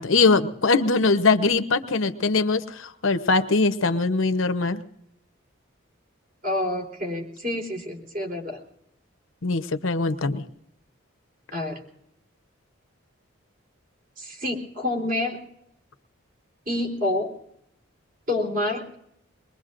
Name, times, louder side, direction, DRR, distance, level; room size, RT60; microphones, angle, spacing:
voice 1, 0.0-4.8 9.4-10.4, left 3 dB, 75° left, 10 dB, 0.9 m, -22 dB
voice 2, 6.4-8.6 11.5-11.8 14.2-15.4 16.7-17.3 18.3-18.9, left 1 dB, 40° right, 0 dB, 3.7 m, -28 dB
23.5 x 21.5 x 2.5 m, 0.76 s
head